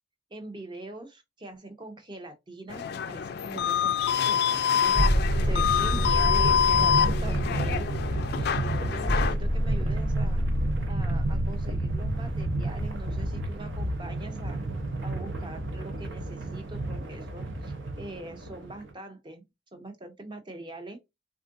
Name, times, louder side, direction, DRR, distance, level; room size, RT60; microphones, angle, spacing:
voice 1, 0.3-7.9 8.3-10.4 10.9-14.6 15.0-19.4 19.7-21.0, right 2 dB, 25° right, 0.6 m, -42 dB
sound 1, 2.7-9.4, left 8 dB, 55° left, 0.3 m, -26 dB
sound 2, 4.9-13.3 13.6-13.7, equal, 90° right, 1.4 m, -29 dB
sound 3, 5.0-18.9, right 2 dB, 70° right, 0.6 m, -31 dB
3.6 x 2.4 x 2.5 m
head